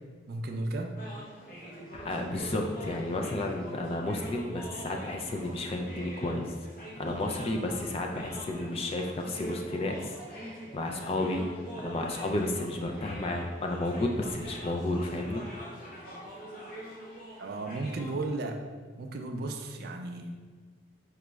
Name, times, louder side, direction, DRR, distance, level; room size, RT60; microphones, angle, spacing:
voice 1, 0.3-0.9 17.4-18.6 19.0-20.4, right 2 dB, 50° right, 4 dB, 0.3 m, -34 dB
sound 1, 1.0-18.2, right 1 dB, 45° left, 0.7 m, -44 dB
voice 2, 1.9-11.4 11.8-15.4 15.9-16.0, left 2 dB, 30° left, 2 dB, 0.3 m, -32 dB
4.9 x 2.3 x 3.1 m, 1.5 s
head